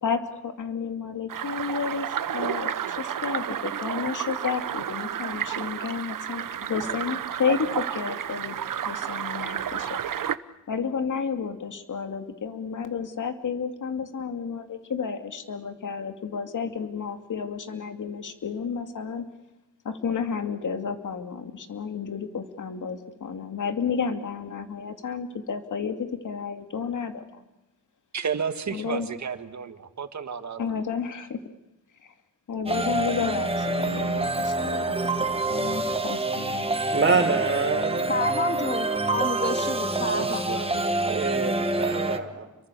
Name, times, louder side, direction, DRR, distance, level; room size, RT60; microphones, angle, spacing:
voice 1, 0.0-8.5 8.9-10.2 10.7-19.2 19.8-26.0 26.2-27.4 28.7-29.1 30.6-31.4 32.0-32.1 32.5-36.7, left 6 dB, 70° left, 7 dB, 2.6 m, -31 dB
sound 1, 1.3-10.4, right 9 dB, 85° right, 1.0 m, -31 dB
voice 2, 28.1-30.6 40.0-41.2, right 6 dB, 60° right, 9 dB, 2.0 m, -32 dB
sound 2, 32.7-42.2, right 2 dB, 20° right, 1.8 m, -27 dB
voice 3, 36.9-38.1 41.1-42.4, right 4 dB, 40° right, 5 dB, 4.2 m, -25 dB
voice 4, 38.1-40.5, left 4 dB, 35° left, 7 dB, 2.2 m, -30 dB
30.0 x 23.5 x 7.0 m, 1.0 s
wide cardioid pair, 110°, 32 cm